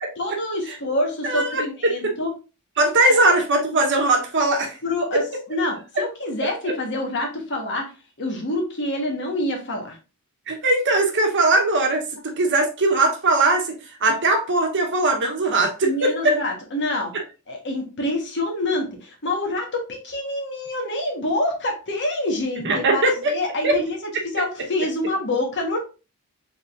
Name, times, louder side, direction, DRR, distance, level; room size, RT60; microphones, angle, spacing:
voice 1, 0.2-2.3 3.0-3.2 4.8-7.9 8.2-10.0 15.8-17.1 17.5-25.8, left 1 dB, 55° left, 2 dB, 1.3 m, -26 dB
voice 2, 1.2-1.9 2.8-4.8 6.6-6.7 10.5-13.7 14.0-16.1 22.6-23.3 23.6-23.7, right 2 dB, 55° right, 2 dB, 1.1 m, -20 dB
5.1 x 3.6 x 2.5 m, 0.32 s
head